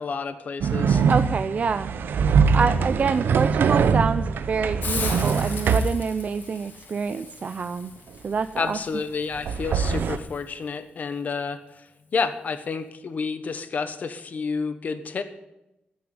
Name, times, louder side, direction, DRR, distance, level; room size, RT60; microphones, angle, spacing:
voice 1, 0.0-1.0 8.6-11.9 12.1-15.2, left 5 dB, 50° left, 10 dB, 1.1 m, -30 dB
sound 1, 0.6-6.0 9.3-10.2, right 6 dB, 80° right, 0.8 m, -22 dB
voice 2, 1.1-1.9 2.5-7.9 8.2-8.8, right 5 dB, 45° right, 10 dB, 0.4 m, -26 dB
Hiss, 4.8-10.4, left 4 dB, 70° left, 2.7 m, -38 dB
14.5 x 6.9 x 9.5 m, 0.90 s
wide cardioid pair, 165°, 3 cm